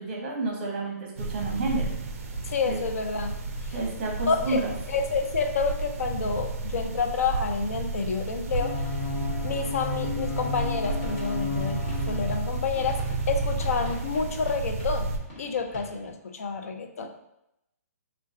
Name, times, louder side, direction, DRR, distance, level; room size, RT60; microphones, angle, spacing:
voice 1, 0.0-1.9 2.6-2.8 3.7-4.7, right 3 dB, 35° right, -2 dB, 0.8 m, -30 dB
sound 1, 1.2-15.2, right 2 dB, 55° right, 0.4 m, -32 dB
voice 2, 2.5-3.4 4.3-4.6 4.9-8.7 9.4-13.0 13.3-15.1 15.4-17.1, left 5 dB, 60° left, 5 dB, 0.5 m, -29 dB
sound 2, 8.6-13.3, left 5 dB, 90° left, 0.8 m, -34 dB
sound 3, 10.6-16.1, equal, 35° left, 1.1 m, -43 dB
3.7 x 2.2 x 2.6 m, 0.83 s
hypercardioid pair, 165°, 9 cm